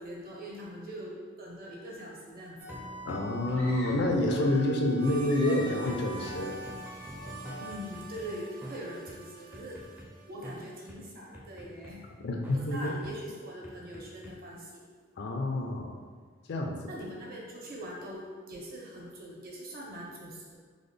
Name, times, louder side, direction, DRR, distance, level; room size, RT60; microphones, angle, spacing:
voice 1, 0.0-2.8 7.5-9.8 10.3-12.1 12.5-14.8 16.9-20.6, equal, 50° right, -3 dB, 0.7 m, -42 dB
sound 1, 2.6-5.2 5.5-8.2 8.6-8.8 9.1-9.2 9.5-10.1 10.4-10.6 10.9-11.0 11.3-11.9 12.4-12.6 13.0-13.1 13.6-14.3, equal, 10° right, 0.4 m, -43 dB
voice 2, 3.1-6.5 12.2-13.0 15.2-16.0 16.5-16.8, left 1 dB, 55° left, 2 dB, 0.4 m, -28 dB
sound 2, 3.5-4.8 5.2-6.0, left 1 dB, 85° left, 0.9 m, -45 dB
sound 3, 5.0-10.9, right 4 dB, 85° right, 0.6 m, -47 dB
3.8 x 2.1 x 3.3 m, 1.5 s
head